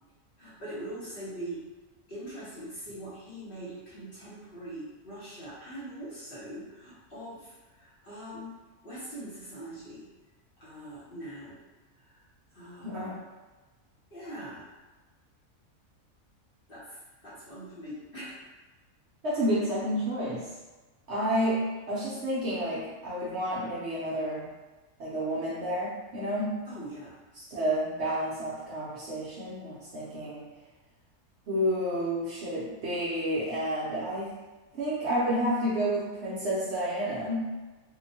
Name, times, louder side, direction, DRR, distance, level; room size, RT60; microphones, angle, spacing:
voice 1, 0.4-1.6 2.1-8.5 8.8-10.1 10.6-11.6 12.1-12.2 12.5-13.2 14.1-14.7 16.7-18.4 26.7-27.2, right 1 dB, 45° left, -10 dB, 0.8 m, -42 dB
voice 2, 12.8-13.2 19.2-20.4 21.1-24.5 25.0-26.6 27.5-30.5 31.5-34.3 34.7-37.5, equal, 60° right, -7 dB, 0.8 m, -30 dB
2.8 x 2.1 x 2.6 m, 1.2 s
omnidirectional pair, 1.5 m